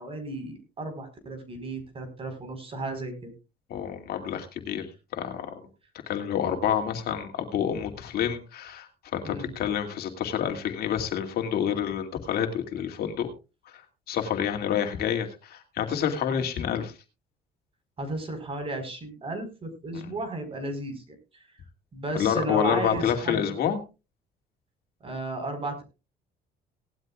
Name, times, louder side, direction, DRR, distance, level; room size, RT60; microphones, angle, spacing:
voice 1, 0.0-3.3 9.2-9.5 18.0-21.2 21.9-23.6 25.0-25.8, right 2 dB, 35° right, 7 dB, 4.6 m, -34 dB
voice 2, 3.7-5.5 6.1-8.9 9.1-13.3 14.1-16.9 19.9-20.1 22.1-23.8, left 9 dB, 65° left, 4 dB, 2.4 m, -28 dB
18.5 x 12.5 x 2.4 m, 0.30 s
cardioid pair, 110°, 17 cm